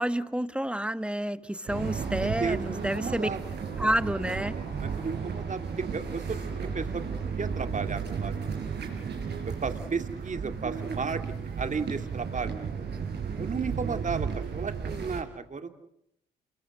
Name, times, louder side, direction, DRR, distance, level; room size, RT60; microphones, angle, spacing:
voice 1, 0.0-3.3 3.8-4.5, right 1 dB, 5° right, 13 dB, 1.3 m, -29 dB
sound 1, 1.7-15.2, right 6 dB, 60° right, 5.9 m, -34 dB
voice 2, 2.2-3.4 3.8-3.9 4.6-8.9 9.5-11.2 11.6-12.7 13.4-15.9, right 5 dB, 40° right, 7 dB, 2.5 m, -34 dB
28.5 x 22.5 x 6.5 m, 0.75 s
hypercardioid pair, 50°, 19 cm